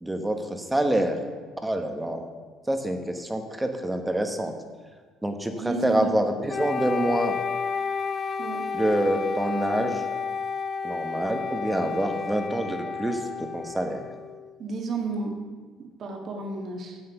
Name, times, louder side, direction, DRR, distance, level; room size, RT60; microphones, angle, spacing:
voice 1, 0.0-1.2 1.6-2.3 2.7-4.5 5.2-7.4 8.7-10.0 10.8-14.0, right 1 dB, 10° right, 6 dB, 1.2 m, -26 dB
voice 2, 5.6-6.1 8.4-8.7 14.6-15.4 15.8-17.0, right 3 dB, 50° right, 3 dB, 1.8 m, -32 dB
Wind instrument woodwind instrument, 6.5-14.5, left 5 dB, 35° left, 0.4 m, -31 dB
9.8 x 7.5 x 5.8 m, 1.5 s
cardioid pair, 110°, 0 cm